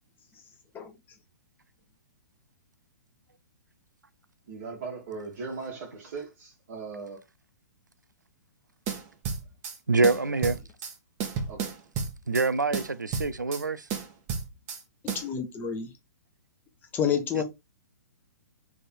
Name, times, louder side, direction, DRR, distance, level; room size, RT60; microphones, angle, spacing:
voice 1, 4.5-7.2 10.2-10.3 11.5-11.7, right 4 dB, 50° right, 1.5 m, -39 dB
sound 1, 8.9-9.8 10.0-10.9 11.2-12.5 12.7-13.6 13.9-14.8 15.1-15.3, right 6 dB, 30° right, 1.2 m, -32 dB
voice 2, 9.9-10.6 12.3-13.9 17.3-17.4, right 3 dB, 90° right, 0.4 m, -25 dB
voice 3, 15.1-15.9 16.9-17.4, left 7 dB, 20° left, 1.0 m, -28 dB
3.5 x 3.3 x 4.2 m
figure-of-eight pair, 115°, 10 cm